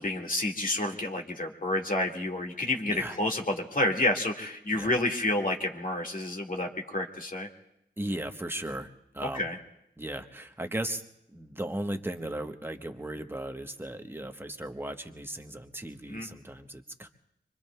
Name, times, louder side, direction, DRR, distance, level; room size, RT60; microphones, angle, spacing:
voice 1, 0.0-7.5 9.2-9.6 16.1-16.3, left 1 dB, 45° left, 0 dB, 1.9 m, -29 dB
voice 2, 8.0-8.9 9.1-9.4 10.0-11.0 11.3-17.1, right 1 dB, 10° right, 6 dB, 1.1 m, -36 dB
25.5 x 24.5 x 2.3 m, 0.79 s
cardioid pair, 55°, 20 cm